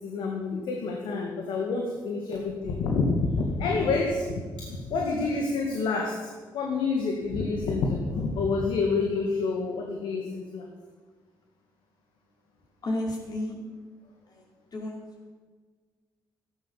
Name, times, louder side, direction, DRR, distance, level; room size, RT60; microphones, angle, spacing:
voice 1, 0.0-10.7, left 4 dB, 85° left, 0 dB, 2.1 m, -28 dB
voice 2, 12.8-13.6 14.3-14.4 14.7-15.0, left 1 dB, 55° left, -1 dB, 5.2 m, -31 dB
14.0 x 11.0 x 7.3 m, 1.5 s
supercardioid pair, 65°, 8 cm